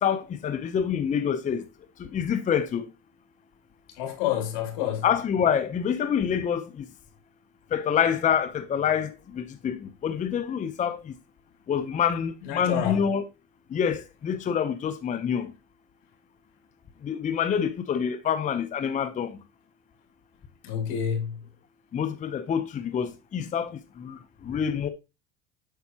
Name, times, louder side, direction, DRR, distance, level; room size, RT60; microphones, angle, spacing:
voice 1, 0.0-1.6 2.0-2.9 5.0-6.8 7.7-11.1 11.7-13.2 13.7-15.5 17.0-19.3 21.9-24.9, left 8 dB, 25° left, 0.7 m, -27 dB
voice 2, 3.9-5.0 12.5-13.0 20.6-21.4, left 9 dB, 80° left, 2.3 m, -28 dB
8.2 x 5.8 x 2.8 m
supercardioid pair, 120°, 30 cm